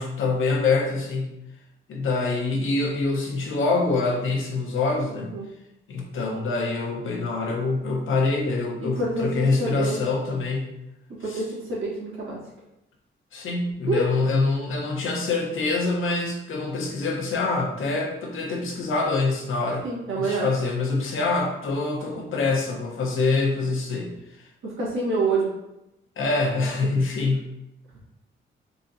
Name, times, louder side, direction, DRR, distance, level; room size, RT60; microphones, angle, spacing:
voice 1, 0.0-1.3 1.9-5.3 5.9-10.7 11.2-11.4 13.3-19.9 20.1-24.5 26.2-27.5, left 3 dB, 80° left, 0 dB, 0.8 m, -25 dB
voice 2, 8.8-9.3 9.6-10.0 11.2-12.4 13.9-14.0 19.8-20.5 24.6-25.5, right 3 dB, 80° right, -6 dB, 1.5 m, -26 dB
4.0 x 2.8 x 2.6 m, 0.90 s
wide cardioid pair, 130°, 20 cm